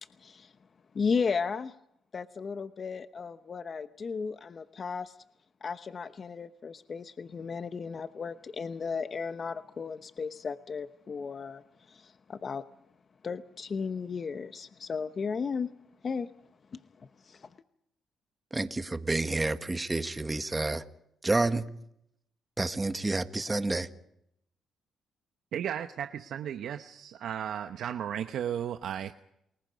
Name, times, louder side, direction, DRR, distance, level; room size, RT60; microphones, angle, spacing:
voice 1, 0.0-0.5 0.9-1.7 2.1-5.2 5.6-12.6 13.2-15.7 16.0-16.3 16.7-17.6, left 5 dB, 45° left, 1.0 m, -35 dB
voice 2, 18.5-20.8 21.2-21.6 22.6-23.9, right 2 dB, 20° right, 1.6 m, -29 dB
voice 3, 25.5-29.1, right 9 dB, 70° right, 0.9 m, -34 dB
29.0 x 21.0 x 5.3 m
cardioid pair, 90°, 0 cm